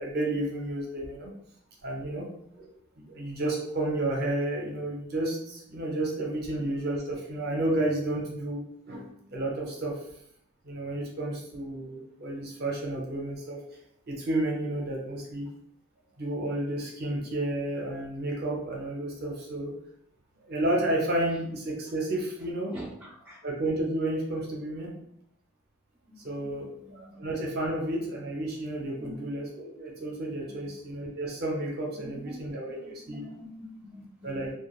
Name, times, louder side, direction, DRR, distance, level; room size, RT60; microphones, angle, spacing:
voice 1, 0.0-1.3 1.8-2.3 2.5-2.7 3.0-9.1 9.3-10.0 10.6-13.6 14.1-15.5 16.2-19.7 20.4-22.8 23.4-24.9 26.2-33.2 34.2-34.5, right 1 dB, 45° right, -1 dB, 0.6 m, -31 dB
voice 2, 22.7-23.4 26.1-27.2 29.0-29.2 30.5-30.6 32.3-32.4 33.1-34.4, equal, 5° right, -7 dB, 0.4 m, -45 dB
2.4 x 2.2 x 3.0 m, 0.73 s
head